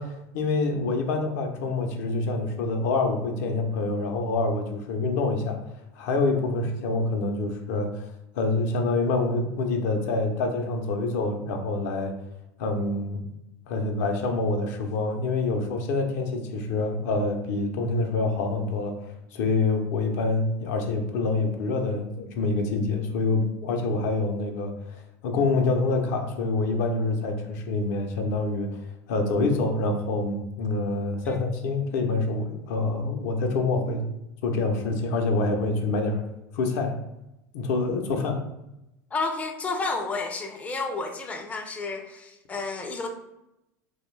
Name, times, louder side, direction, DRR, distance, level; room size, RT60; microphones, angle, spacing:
voice 1, 0.0-5.6 6.0-12.2 12.6-13.3 13.7-28.8 29.1-34.1 34.4-36.2 36.5-37.0 37.5-38.4, left 3 dB, 70° left, 4 dB, 0.5 m, -26 dB
voice 2, 39.1-43.1, left 3 dB, 15° left, 4 dB, 0.3 m, -31 dB
2.5 x 2.2 x 3.1 m, 0.89 s
hypercardioid pair, 95°, 9 cm